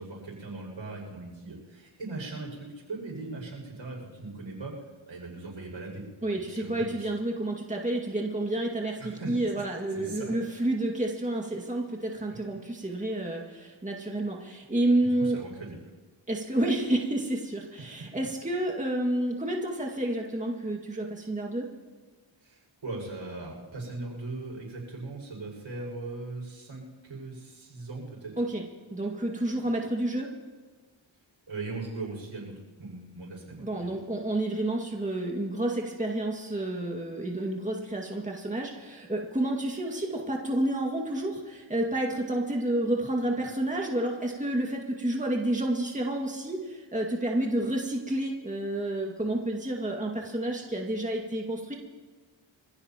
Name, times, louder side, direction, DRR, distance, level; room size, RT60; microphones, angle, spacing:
voice 1, 0.0-4.7 5.1-6.0 6.5-7.1 9.0-9.4 9.9-10.7 15.0-15.9 17.9-18.0 22.4-28.4 31.5-34.0, right 3 dB, 70° right, -2 dB, 6.3 m, -39 dB
voice 2, 6.2-15.4 16.3-21.7 28.4-28.6 28.9-30.3 33.6-51.7, right 1 dB, 15° right, 0 dB, 2.1 m, -30 dB
25.5 x 15.5 x 3.0 m, 1.3 s
cardioid pair, 45°, 48 cm